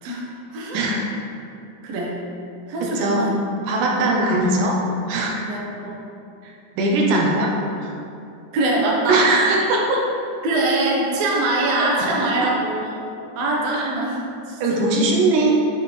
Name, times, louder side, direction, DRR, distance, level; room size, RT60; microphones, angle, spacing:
voice 1, 1.8-2.2 2.7-3.3 3.9-4.2 5.4-6.0 8.5-9.3 10.4-13.1 13.4-14.2 14.5-14.8, right 2 dB, 70° right, -3 dB, 1.8 m, -23 dB
voice 2, 2.9-3.3 3.7-4.8 5.1-5.3 6.4-7.5 7.8-7.9 9.1-10.0 12.0-12.1 12.4-12.5 13.7-13.8 14.6-15.5, right 2 dB, 85° right, -2 dB, 2.3 m, -20 dB
7.0 x 4.3 x 3.1 m, 2.6 s
omnidirectional pair, 3.6 m